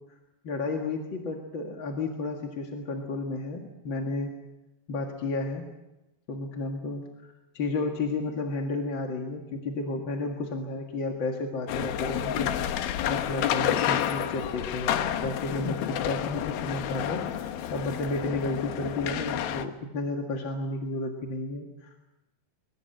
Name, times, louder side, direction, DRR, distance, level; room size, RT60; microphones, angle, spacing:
voice 1, 0.4-4.3 4.9-5.6 6.3-12.5 13.1-22.0, left 2 dB, 45° left, 2 dB, 1.8 m, -32 dB
sound 1, 11.7-19.7, left 10 dB, 70° left, 2.8 m, -30 dB
22.5 x 22.5 x 7.9 m, 0.98 s
omnidirectional pair, 4.6 m